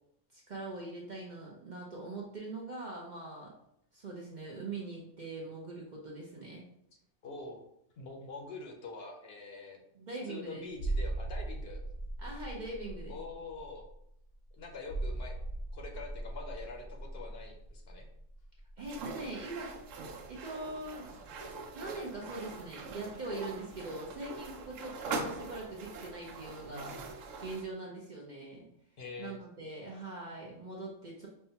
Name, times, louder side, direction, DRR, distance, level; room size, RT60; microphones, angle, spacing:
voice 1, 0.3-3.5 3.9-6.6 9.9-10.7 12.2-13.2 18.8-19.8 20.3-21.2 21.7-26.9 27.4-28.7 29.2-31.3, right 2 dB, 50° right, -3 dB, 0.6 m, -42 dB
voice 2, 7.2-7.6 8.0-9.8 10.2-11.8 13.1-13.9 14.5-15.4 15.7-18.1 26.7-27.1 29.0-29.4, left 3 dB, 60° left, 1 dB, 0.8 m, -45 dB
sound 1, 10.7-19.2 19.4-19.6, right 2 dB, 80° left, 0.3 m, -39 dB
sound 2, 18.8-27.7, right 4 dB, 90° right, 0.9 m, -43 dB
5.5 x 2.2 x 2.8 m, 0.75 s
omnidirectional pair, 1.3 m